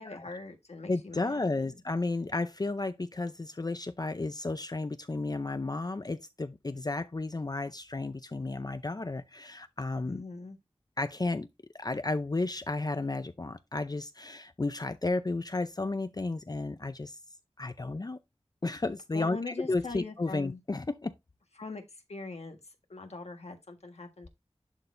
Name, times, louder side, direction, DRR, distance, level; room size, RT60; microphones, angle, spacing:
voice 1, 0.0-1.8 10.0-10.6 19.1-20.6 21.6-21.8 22.1-22.6 22.9-24.3, left 3 dB, 75° left, 1.5 m, -42 dB
voice 2, 0.9-10.2 11.0-11.5 11.7-17.2 17.6-18.2 18.6-21.1, left 2 dB, 35° left, 0.5 m, -33 dB
11.0 x 4.0 x 2.6 m
wide cardioid pair, 55°, 11 cm